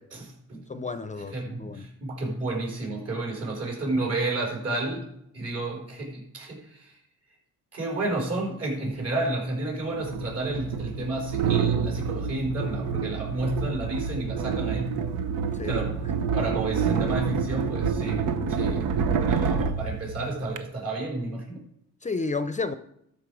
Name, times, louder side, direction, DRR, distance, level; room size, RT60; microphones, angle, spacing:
voice 1, 0.1-0.9 1.3-5.1 5.3-7.0 7.7-14.9 15.6-16.1 16.3-18.2 18.5-18.8 19.2-21.6, right 2 dB, 55° right, -1 dB, 4.6 m, -31 dB
voice 2, 0.7-1.9 15.6-15.8 16.1-16.2 22.0-22.8, left 4 dB, 25° left, 11 dB, 0.6 m, -31 dB
sound 1, 8.9-9.0 10.0-20.6, right 6 dB, 90° right, 0.9 m, -28 dB
13.0 x 5.5 x 4.9 m, 0.76 s
cardioid pair, 90°, 30 cm